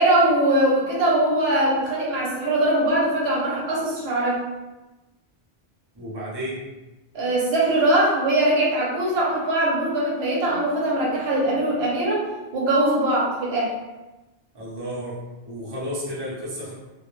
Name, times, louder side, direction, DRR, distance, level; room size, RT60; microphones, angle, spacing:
voice 1, 0.0-4.4 7.1-12.2 12.5-13.7, right 1 dB, 75° right, -4 dB, 0.9 m, -21 dB
voice 2, 5.9-6.7 14.5-16.7, equal, 30° right, -7 dB, 0.6 m, -32 dB
2.2 x 2.2 x 3.0 m, 1.1 s
omnidirectional pair, 1.1 m